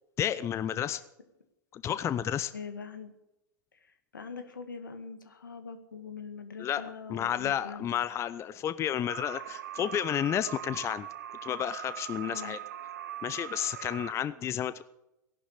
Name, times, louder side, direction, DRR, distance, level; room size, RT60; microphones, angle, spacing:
voice 1, 0.2-1.0 1.7-2.5 6.6-6.8 7.1-11.1 11.4-12.6 13.2-14.8, left 10 dB, 25° left, 14 dB, 0.6 m, -31 dB
voice 2, 2.5-3.1 3.7-7.9 12.3-12.6, left 5 dB, 85° left, 7 dB, 2.1 m, -43 dB
sound 1, 9.1-14.1, right 10 dB, 70° right, 1.0 m, -41 dB
18.0 x 11.5 x 6.7 m, 0.91 s
figure-of-eight pair, 95°, 10 cm